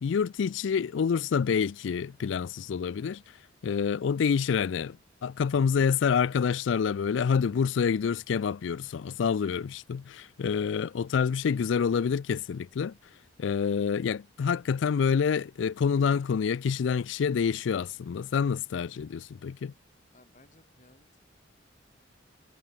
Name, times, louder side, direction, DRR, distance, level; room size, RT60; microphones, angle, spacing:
voice 1, 0.0-3.2 3.6-12.9 13.4-19.7, left 6 dB, 75° left, 0.4 m, -27 dB
voice 2, 18.9-19.3 20.1-21.2, left 2 dB, 40° left, 7.8 m, -61 dB
head